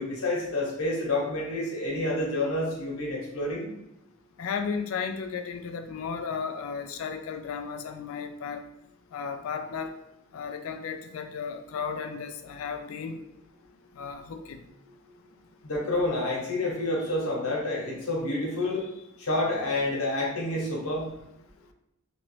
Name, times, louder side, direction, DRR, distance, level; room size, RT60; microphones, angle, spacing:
voice 1, 0.0-3.7 15.6-21.1, left 2 dB, 85° left, -2 dB, 1.0 m, -29 dB
voice 2, 4.4-8.6 9.1-9.9 10.3-13.2 14.0-14.6, left 6 dB, 70° left, 7 dB, 0.3 m, -34 dB
3.0 x 2.5 x 3.0 m, 0.85 s
head